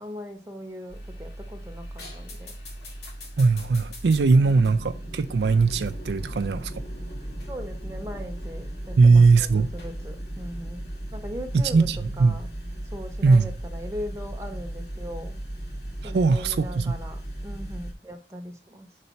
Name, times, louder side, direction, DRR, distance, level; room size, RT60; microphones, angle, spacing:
voice 1, 0.0-2.5 4.3-4.7 7.5-11.9 12.2-12.5 12.8-15.4 16.0-18.9, equal, 15° right, 0.9 m, -39 dB
sound 1, 0.9-17.9, right 1 dB, 65° left, 2.0 m, -36 dB
voice 2, 3.4-6.7 9.0-9.7 11.5-12.4 13.2-13.5 16.0-16.9, right 4 dB, 75° right, 0.4 m, -20 dB
5.3 x 4.1 x 5.7 m
head